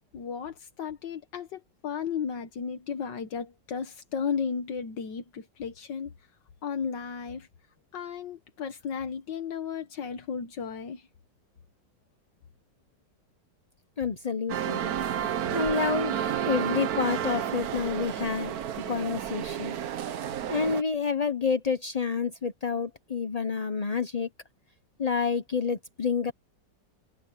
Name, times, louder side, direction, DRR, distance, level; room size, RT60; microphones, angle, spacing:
voice 1, 0.1-6.1 6.6-7.5 7.9-11.1, left 6 dB, 75° left, 1.9 m, -34 dB
voice 2, 14.0-14.8 15.5-19.8 20.5-24.3 25.0-26.3, left 5 dB, 45° left, 0.5 m, -29 dB
sound 1, 14.5-20.8, right 9 dB, 60° right, 1.3 m, -31 dB
omnidirectional pair, 1.9 m